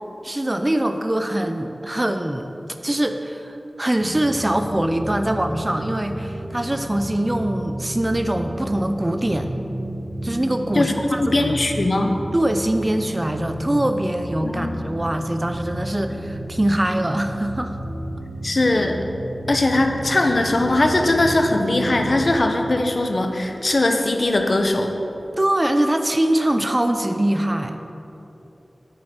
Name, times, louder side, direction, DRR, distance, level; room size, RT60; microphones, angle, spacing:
voice 1, 0.2-2.5 2.8-9.5 10.2-11.5 12.3-17.8 25.3-27.8, right 1 dB, 25° right, 7 dB, 0.5 m, -23 dB
sound 1, 4.0-22.4, right 1 dB, 45° right, 1.6 m, -32 dB
voice 2, 11.2-12.1 14.4-14.8 18.4-19.0 19.5-24.9, left 2 dB, 55° left, 4 dB, 0.9 m, -20 dB
8.9 x 8.7 x 4.3 m, 3.0 s
wide cardioid pair, 75°, 0 cm